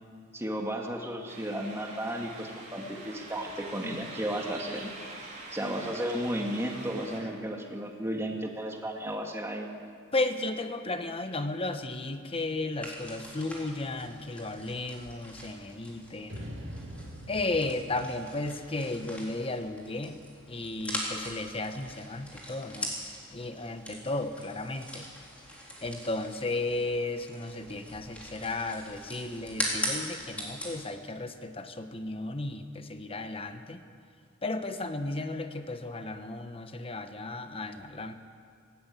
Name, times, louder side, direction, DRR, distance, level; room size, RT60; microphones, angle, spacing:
voice 1, 0.3-4.9 5.5-9.7, right 1 dB, 10° right, 2 dB, 2.1 m, -34 dB
sound 1, 1.3-7.2, right 2 dB, 35° right, 4.2 m, -45 dB
voice 2, 10.1-16.5 17.3-20.2 20.5-22.9 23.3-25.0 25.8-33.8 34.4-38.1, left 2 dB, 25° left, 9 dB, 1.1 m, -34 dB
sound 2, 12.8-30.9, equal, 5° left, 3.8 m, -41 dB
sound 3, 16.3-19.5, equal, 60° right, 4.4 m, -44 dB
18.5 x 17.0 x 8.5 m, 2.2 s
head